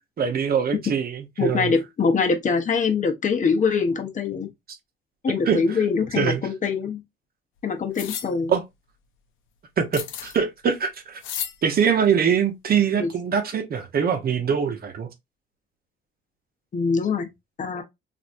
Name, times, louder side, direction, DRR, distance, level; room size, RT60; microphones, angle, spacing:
voice 1, 0.2-1.7 5.5-5.6 6.2-6.4 8.5-8.6 9.8-11.2 11.6-15.1, right 7 dB, 50° right, 0.8 m, -23 dB
voice 2, 1.4-4.5 5.2-7.0 7.6-8.5 13.0-13.1 16.7-17.3 17.6-17.8, left 5 dB, 40° left, 0.9 m, -23 dB
sound 1, 7.9-8.3 9.9-10.4 11.2-11.6, left 9 dB, 80° left, 0.6 m, -32 dB
3.1 x 2.6 x 2.6 m
cardioid pair, 90°, 20 cm